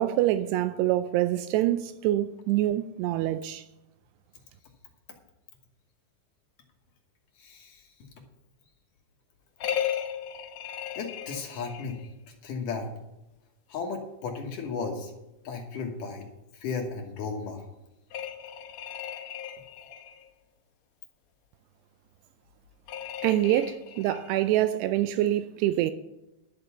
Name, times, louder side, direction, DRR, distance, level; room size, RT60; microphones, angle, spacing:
voice 1, 0.0-3.6 23.2-25.9, right 13 dB, 85° right, 2.7 m, -25 dB
voice 2, 7.4-7.8 11.0-12.0 12.4-12.9 13.7-15.1 15.4-16.2 16.6-17.6, left 4 dB, 65° left, 2.4 m, -34 dB
sound 1, 9.6-12.1 18.1-20.2 22.9-24.4, left 9 dB, 90° left, 1.5 m, -36 dB
12.0 x 6.8 x 7.0 m
omnidirectional pair, 4.8 m